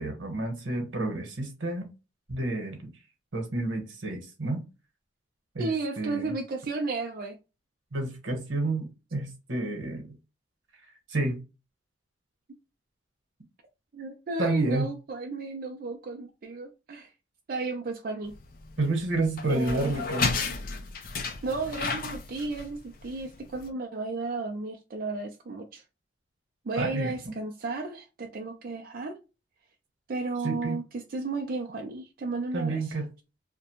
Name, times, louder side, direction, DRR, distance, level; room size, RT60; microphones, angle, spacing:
voice 1, 0.0-1.9 2.3-2.9 3.3-4.6 5.5-5.7 6.0-6.3 7.9-10.2 11.1-11.4 14.4-14.9 18.8-20.3 26.7-27.3 30.4-30.8 32.5-33.1, right 2 dB, 85° right, 1.0 m, -30 dB
voice 2, 5.6-7.4 13.9-17.1 17.5-18.3 19.5-19.9 21.4-25.8 26.6-29.1 30.1-33.0, right 3 dB, 50° right, 0.4 m, -33 dB
sound 1, 18.3-23.7, left 4 dB, 50° left, 0.4 m, -33 dB
2.5 x 2.1 x 2.8 m
head